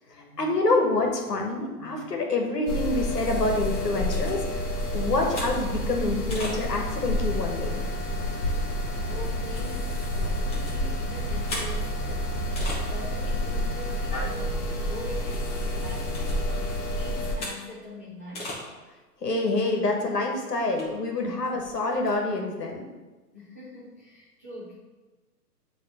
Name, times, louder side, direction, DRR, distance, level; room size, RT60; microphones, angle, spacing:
voice 1, 0.1-4.6 4.9-7.8 19.2-22.8, left 2 dB, 80° left, 1 dB, 1.5 m, -27 dB
sound 1, 2.7-17.3, left 1 dB, 30° left, 1.3 m, -29 dB
sound 2, 3.1-7.0 7.5-7.6 8.0-8.1 8.5-8.6 9.0-13.1 13.5-13.6 13.9-14.0 14.3-14.6 15.1-17.8 18.1-18.7 19.0-19.1 19.6-19.7 20.0-20.1 20.6-22.2, left 1 dB, 15° left, 1.0 m, -41 dB
voice 2, 9.1-18.6 23.3-24.7, left 1 dB, 10° right, -10 dB, 0.4 m, -43 dB
7.6 x 3.4 x 4.2 m, 1.2 s
figure-of-eight pair, 130°, 48 cm